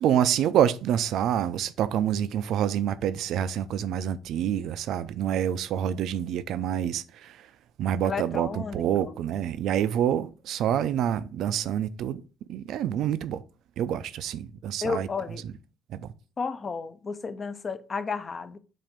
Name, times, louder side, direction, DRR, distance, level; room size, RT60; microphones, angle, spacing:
voice 1, 0.0-7.3 7.8-12.2 12.5-13.4 13.8-15.1 15.9-16.0, right 10 dB, 65° right, 0.4 m, -27 dB
voice 2, 8.0-9.2 14.8-15.4 16.4-18.6, left 5 dB, 30° left, 0.5 m, -32 dB
7.4 x 2.6 x 5.0 m
cardioid pair, 140°, 0 cm